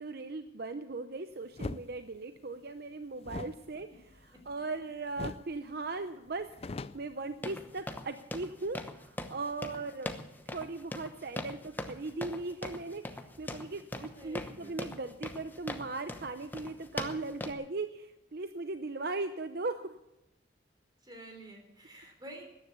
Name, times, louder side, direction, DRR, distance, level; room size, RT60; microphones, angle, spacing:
voice 1, 0.0-3.9 4.5-10.1 10.5-20.0, right 3 dB, 55° right, 9 dB, 0.7 m, -38 dB
sound 1, 1.6-1.8 3.2-4.8 5.2-5.5 5.8-5.9 6.3-7.8, left 3 dB, 35° left, 0.4 m, -41 dB
sound 2, 7.4-17.5, left 1 dB, 10° left, 0.9 m, -41 dB
voice 2, 14.0-14.8 21.0-22.4, right 1 dB, 20° right, 3 dB, 3.5 m, -49 dB
14.0 x 10.0 x 8.2 m, 0.93 s
head